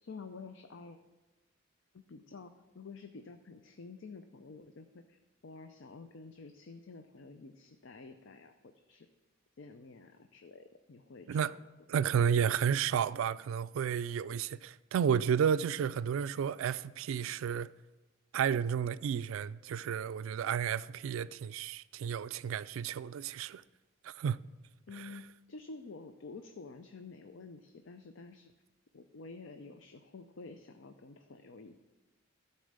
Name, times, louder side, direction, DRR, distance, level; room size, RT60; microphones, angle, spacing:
voice 1, 0.0-1.0 1.9-9.1 9.6-11.5 24.9-28.5 28.9-31.8, left 4 dB, 65° left, 0.5 m, -50 dB
voice 2, 11.9-17.7 18.3-23.6 24.0-24.4 25.0-25.1, right 8 dB, 80° right, 0.3 m, -32 dB
12.5 x 4.3 x 6.5 m
head